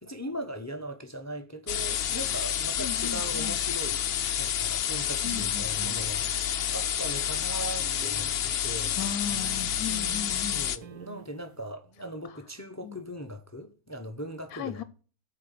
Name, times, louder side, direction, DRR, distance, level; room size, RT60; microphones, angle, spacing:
voice 1, 0.0-4.0 4.4-9.0 10.5-14.8, right 1 dB, 20° left, 0.5 m, -39 dB
sound 1, 1.7-10.8, left 10 dB, 60° left, 0.7 m, -29 dB
voice 2, 2.8-3.6 5.2-5.7 9.0-10.6 12.8-13.0 14.5-14.8, left 9 dB, 75° left, 1.0 m, -36 dB
sound 2, 5.2-7.4 7.8-11.7, right 10 dB, 90° right, 1.4 m, -47 dB
8.7 x 4.7 x 6.7 m
omnidirectional pair, 1.5 m